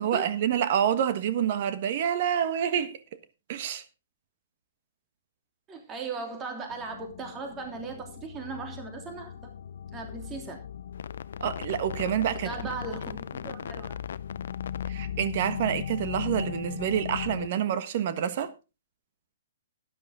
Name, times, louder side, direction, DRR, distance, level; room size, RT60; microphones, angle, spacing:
voice 1, 0.0-3.0 3.5-3.8 11.4-12.5 14.9-18.5, right 9 dB, 50° right, 1.3 m, -27 dB
voice 2, 5.7-9.3 9.9-10.6 12.4-13.9, right 4 dB, 20° right, 3.0 m, -38 dB
sound 1, 6.7-17.5, left 9 dB, 70° left, 0.5 m, -37 dB
12.5 x 10.5 x 3.7 m
hypercardioid pair, 135°, 0 cm